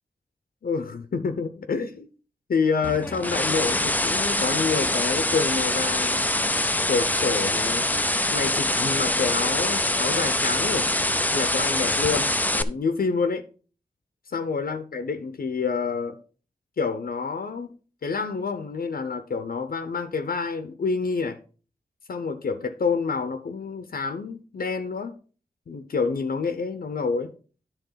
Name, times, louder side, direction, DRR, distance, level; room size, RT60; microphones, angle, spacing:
voice 1, 0.6-2.1 2.5-6.3 6.9-7.9 8.3-10.9 11.3-13.4 14.3-16.2 16.8-17.7 18.0-21.4 22.1-25.2 25.7-27.3, left 5 dB, 70° left, 0.8 m, -28 dB
sound 1, 2.8-12.6, left 1 dB, 10° left, 0.5 m, -24 dB
10.5 x 3.7 x 5.7 m
wide cardioid pair, 105°, 16 cm